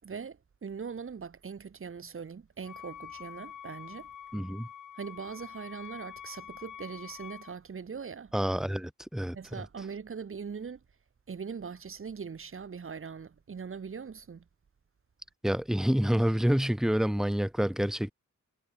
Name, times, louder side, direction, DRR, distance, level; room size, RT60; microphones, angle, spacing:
voice 1, 0.0-4.1 5.0-8.3 9.3-10.8 11.3-14.4, right 6 dB, 45° right, 5.2 m, -41 dB
Wind instrument woodwind instrument, 2.6-7.6, left 9 dB, 90° left, 7.5 m, -46 dB
voice 2, 4.3-4.7 8.3-9.4 15.4-18.1, equal, ahead, 2.3 m, -27 dB
wide cardioid pair, 160°, 30 cm